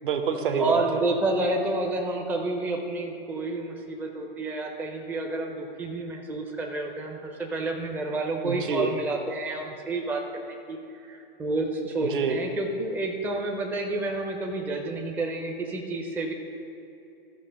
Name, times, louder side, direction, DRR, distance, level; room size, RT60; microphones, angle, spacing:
voice 1, 0.0-1.0 8.4-8.9 12.0-12.4, right 6 dB, 60° right, 6 dB, 1.1 m, -27 dB
voice 2, 0.6-10.2 10.5-10.8 11.0-16.3, right 2 dB, 5° right, 1 dB, 0.5 m, -29 dB
13.5 x 5.3 x 5.2 m, 2.8 s
figure-of-eight pair, 115°, 29 cm